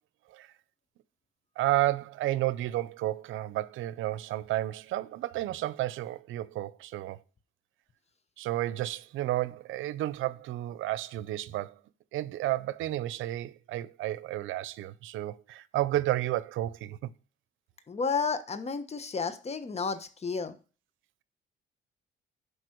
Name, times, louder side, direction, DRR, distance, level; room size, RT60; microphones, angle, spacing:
voice 1, 1.6-7.2 8.4-11.8 12.1-17.1, right 15 dB, 85° right, 0.6 m, -31 dB
voice 2, 17.9-20.5, left 5 dB, 30° left, 1.3 m, -32 dB
12.5 x 5.4 x 4.6 m
cardioid pair, 90°, 20 cm